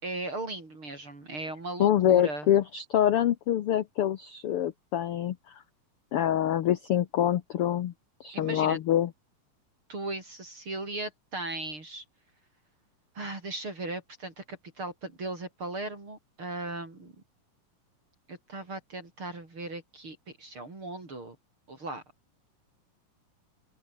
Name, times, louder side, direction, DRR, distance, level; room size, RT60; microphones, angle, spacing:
voice 1, 0.0-2.5 8.3-8.8 9.9-12.0 13.2-17.1 18.3-21.4 21.7-22.0, right 2 dB, 40° right, 5.9 m, -37 dB
voice 2, 1.8-5.5 6.1-7.9 8.2-9.1, left 11 dB, 70° left, 1.3 m, -25 dB
open air
omnidirectional pair, 3.8 m